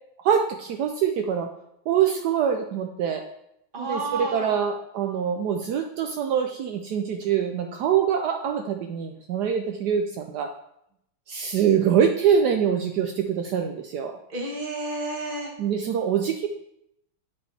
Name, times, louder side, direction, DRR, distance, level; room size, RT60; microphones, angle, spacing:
voice 1, 0.2-1.5 1.9-3.2 3.8-10.5 11.3-14.2 15.6-16.5, right 8 dB, 80° right, 4 dB, 0.9 m, -24 dB
voice 2, 3.7-4.6 14.3-15.5, right 2 dB, 30° right, -1 dB, 1.3 m, -31 dB
9.8 x 4.3 x 3.4 m, 0.77 s
omnidirectional pair, 2.4 m